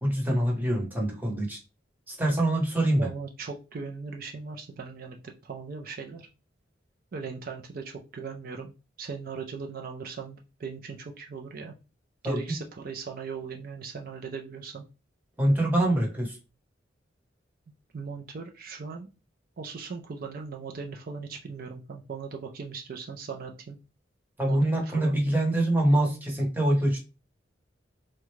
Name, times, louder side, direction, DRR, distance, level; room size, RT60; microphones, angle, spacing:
voice 1, 0.0-1.6 2.1-3.1 12.2-12.4 15.4-16.4 24.4-27.0, right 1 dB, 10° right, -1 dB, 0.9 m, -24 dB
voice 2, 3.0-6.3 7.1-8.7 9.0-11.7 12.2-14.8 17.9-19.1 19.6-23.8 24.5-25.1, right 5 dB, 50° right, 2 dB, 0.4 m, -38 dB
3.6 x 2.2 x 3.1 m, 0.30 s
head